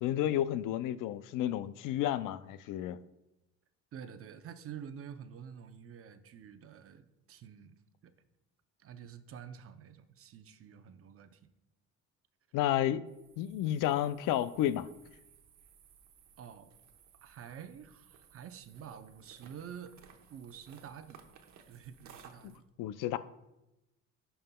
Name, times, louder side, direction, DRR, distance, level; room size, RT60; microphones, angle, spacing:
voice 1, 0.0-3.0 12.5-13.0 13.4-14.9 22.4-23.2, left 12 dB, 90° left, 14 dB, 0.5 m, -31 dB
voice 2, 3.9-8.1 8.8-11.4 16.4-16.7 17.2-19.9 20.3-21.2 21.7-22.7, right 8 dB, 45° right, 9 dB, 0.6 m, -48 dB
sound 1, 13.1-22.6, right 7 dB, 65° right, 1.0 m, -59 dB
16.5 x 5.6 x 2.2 m, 0.94 s
cardioid pair, 140°, 31 cm